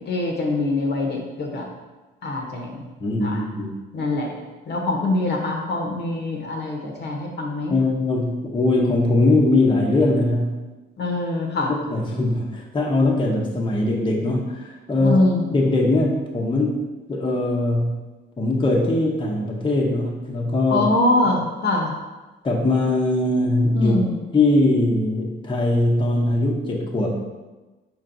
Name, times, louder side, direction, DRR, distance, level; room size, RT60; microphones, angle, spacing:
voice 1, 0.0-1.7 2.2-2.8 3.2-3.4 3.9-7.7 11.0-11.7 15.0-15.5 20.7-21.9 23.7-24.2, left 2 dB, 60° left, 1 dB, 0.9 m, -23 dB
voice 2, 3.0-3.7 7.7-10.6 11.7-15.2 15.5-18.0 18.4-20.9 22.4-24.0 24.3-27.2, left 2 dB, 25° left, -2 dB, 0.7 m, -21 dB
4.4 x 4.4 x 2.6 m, 1.2 s
cardioid pair, 90°, 20 cm